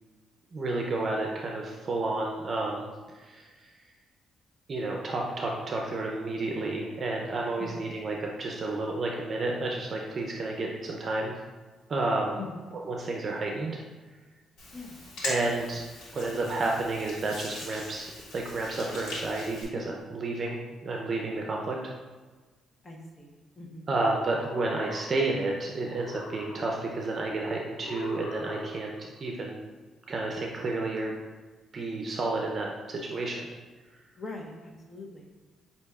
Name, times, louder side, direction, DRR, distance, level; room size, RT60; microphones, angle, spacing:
voice 1, 0.5-3.9 4.7-11.3 11.9-12.4 12.9-13.8 15.2-15.8 16.1-21.9 23.9-28.9 29.2-29.6 30.1-31.1 31.7-33.5, right 2 dB, 45° right, 0 dB, 0.5 m, -31 dB
voice 2, 12.4-12.7 14.7-15.0 22.8-23.9 34.2-35.3, left 3 dB, 30° left, 1 dB, 0.8 m, -42 dB
Hands, 14.6-19.6, left 2 dB, 80° left, 1.5 m, -40 dB
sound 1, 24.1-25.5 25.8-27.1 27.8-29.1, left 2 dB, 60° left, 0.6 m, -42 dB
7.8 x 2.7 x 2.3 m, 1.4 s
cardioid pair, 90°, 0 cm